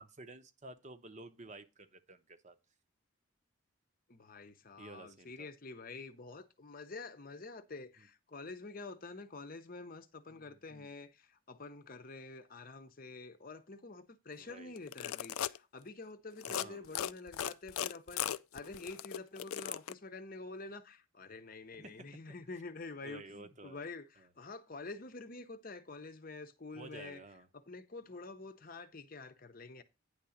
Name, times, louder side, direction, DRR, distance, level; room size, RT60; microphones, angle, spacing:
voice 1, 0.0-2.6 4.8-5.5 10.3-10.4 10.7-10.9 14.4-14.7 16.5-16.8 21.8-21.9 23.0-23.8 26.8-27.5, right 2 dB, 35° right, 0.8 m, -51 dB
voice 2, 4.1-27.2 27.5-29.8, left 3 dB, 40° left, 0.8 m, -48 dB
sound 1, 14.8-15.6 16.3-16.6 16.9-19.9, left 10 dB, 85° left, 0.4 m, -37 dB
9.6 x 3.8 x 7.0 m
head